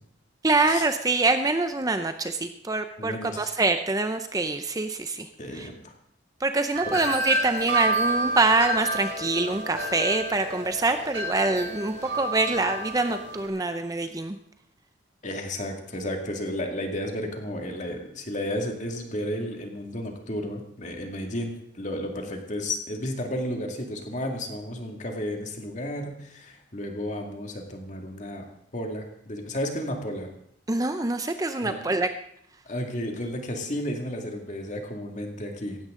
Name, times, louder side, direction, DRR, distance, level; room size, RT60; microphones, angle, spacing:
voice 1, 0.4-5.3 5.5-5.7 6.4-14.4 30.7-32.1, right 3 dB, 20° right, 8 dB, 0.6 m, -25 dB
voice 2, 3.0-3.5 5.4-5.9 6.8-7.0 15.2-28.5 28.7-30.3 31.6-31.8 32.7-35.8, left 1 dB, 40° left, 2 dB, 2.2 m, -33 dB
Wind chime, 6.7-13.5, right 1 dB, 65° right, 2.2 m, -30 dB
17.0 x 15.0 x 3.8 m, 0.68 s
head